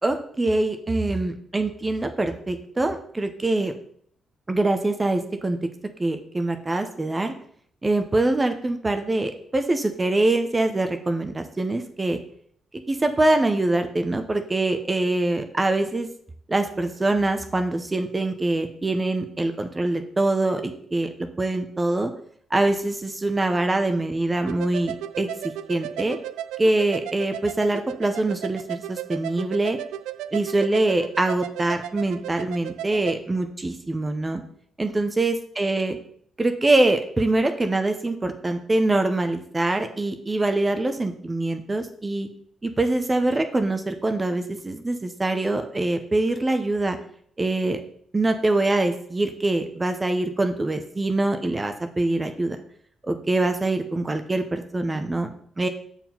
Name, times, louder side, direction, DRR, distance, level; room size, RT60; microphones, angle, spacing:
voice 1, 0.0-3.7 4.5-5.6 6.0-7.3 7.8-12.2 12.7-16.1 16.5-22.1 22.5-26.2 26.6-29.8 30.3-34.4 34.8-36.0 36.4-42.3 42.6-47.0 47.4-47.8 48.1-52.6 53.0-55.3 55.6-55.7, right 2 dB, 25° right, 7 dB, 0.9 m, -24 dB
sound 1, 24.5-33.2, right 12 dB, 75° right, 0.3 m, -35 dB
7.2 x 4.6 x 5.6 m, 0.63 s
hypercardioid pair, 40°, 0 cm